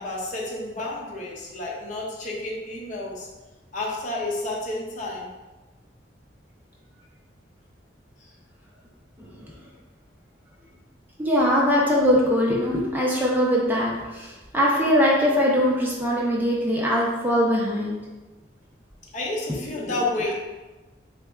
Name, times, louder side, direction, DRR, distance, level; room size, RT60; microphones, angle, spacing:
voice 1, 0.0-3.3 3.7-5.3 8.2-8.3 19.1-20.4, left 2 dB, 45° left, -2 dB, 0.6 m, -30 dB
voice 2, 11.2-18.0, equal, 10° right, -4 dB, 0.5 m, -21 dB
3.9 x 3.3 x 2.3 m, 1.1 s
head